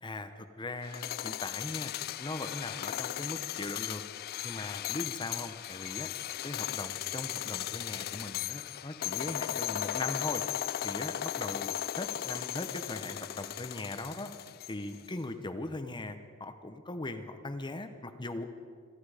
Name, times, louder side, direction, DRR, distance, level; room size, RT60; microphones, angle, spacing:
voice 1, 0.0-1.9 2.2-4.0 4.4-6.1 6.4-10.4 10.8-14.3 14.7-18.5, left 2 dB, 20° left, 8 dB, 0.8 m, -39 dB
sound 1, 0.8-15.0, left 12 dB, 45° left, 0.3 m, -37 dB
28.0 x 10.5 x 5.0 m, 2.1 s
head